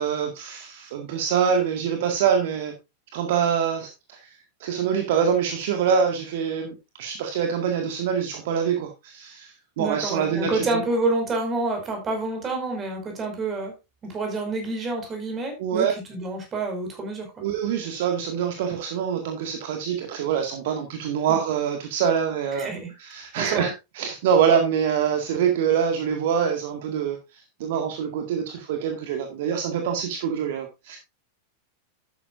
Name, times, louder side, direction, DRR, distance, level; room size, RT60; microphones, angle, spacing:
voice 1, 0.0-2.7 3.1-10.8 15.6-15.9 17.4-22.7 23.0-31.0, right 7 dB, 55° right, 4 dB, 1.9 m, -25 dB
voice 2, 9.8-13.7 14.0-17.4 21.3-21.4 22.6-22.9 23.4-23.7, right 2 dB, 25° right, 4 dB, 5.4 m, -28 dB
12.0 x 9.6 x 2.6 m, 0.24 s
figure-of-eight pair, 90°, 0 cm